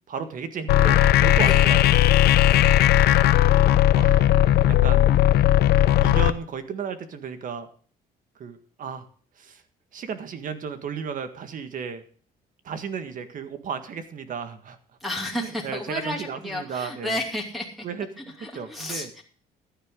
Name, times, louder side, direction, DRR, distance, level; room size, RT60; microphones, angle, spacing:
voice 1, 0.1-2.0 2.3-2.6 3.0-3.4 3.9-4.4 4.7-5.1 6.0-7.7 8.4-9.1 9.4-9.6 9.9-12.0 12.6-14.8 15.3-17.2 17.8-19.1, right 6 dB, 50° right, 9 dB, 1.8 m, -34 dB
sound 1, 0.7-6.3, left 13 dB, 70° left, 0.7 m, -17 dB
voice 2, 2.5-3.3 15.0-17.9 18.2-19.2, left 1 dB, ahead, -2 dB, 2.6 m, -33 dB
15.0 x 10.5 x 3.8 m, 0.44 s
cardioid pair, 110°, 17 cm